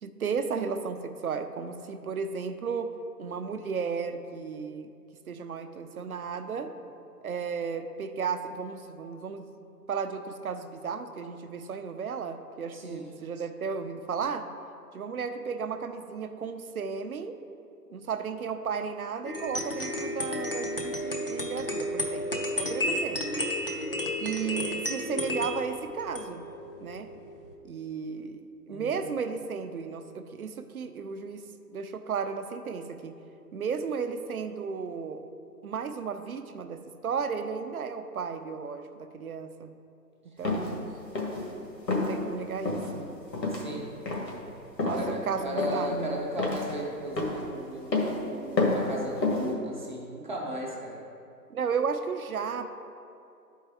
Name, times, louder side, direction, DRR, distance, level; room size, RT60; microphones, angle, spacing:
voice 1, 0.0-2.9 3.2-4.9 5.3-6.7 7.2-9.5 9.9-14.5 14.9-17.4 17.9-23.2 24.2-26.4 26.8-27.1 27.6-28.4 28.7-33.2 33.5-35.2 35.6-39.7 40.4-40.9 41.9-43.0 44.8-46.2 51.5-52.7, right 6 dB, 60° right, 8 dB, 0.6 m, -34 dB
voice 2, 12.7-13.1 28.7-29.1 43.5-43.9 44.8-51.0, equal, 30° right, -3 dB, 0.8 m, -36 dB
sound 1, 19.3-27.6, left 1 dB, 35° left, 0.5 m, -32 dB
sound 2, 40.4-40.7 41.1-41.5 41.9-42.1 42.6-42.9 43.3-43.7 44.1-44.4 44.8-45.1 45.6-45.9 46.4-46.7 47.2-47.4 47.9-48.2 48.6-48.9 49.2-49.5, left 2 dB, 90° left, 1.8 m, -28 dB
11.5 x 4.6 x 3.4 m, 2.5 s
hypercardioid pair, 165°, 49 cm